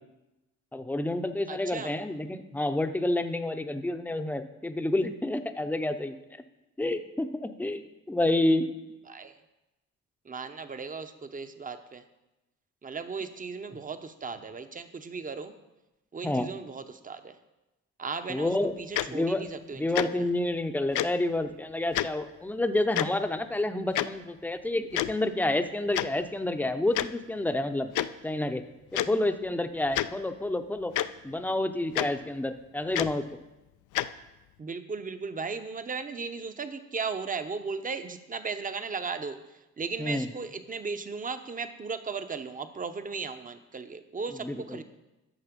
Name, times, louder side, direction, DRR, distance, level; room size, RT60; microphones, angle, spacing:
voice 1, 0.7-6.2 6.8-8.7 16.2-16.5 18.3-18.7 19.1-19.5 19.7-27.9 28.2-28.6 29.1-30.9 31.2-33.2 40.0-40.3 44.3-44.8, left 1 dB, 5° left, 8 dB, 0.7 m, -29 dB
voice 2, 1.5-1.9 9.1-9.3 10.3-12.0 12.8-15.5 16.1-17.3 18.0-20.0 34.6-39.4 39.8-44.8, right 5 dB, 25° right, 10 dB, 0.8 m, -36 dB
Tick-tock, 18.9-19.1 19.9-20.1 20.9-21.1 21.9-22.1 22.9-23.1 24.0-24.1 24.9-25.1 25.9-26.1 26.9-27.1 27.9-28.1 28.9-29.1 29.9-30.1 30.9-31.1 31.9-32.1 32.9-33.1 33.9-34.1, left 14 dB, 80° left, 0.5 m, -27 dB
11.0 x 6.7 x 5.2 m, 1.0 s
cardioid pair, 90°, 30 cm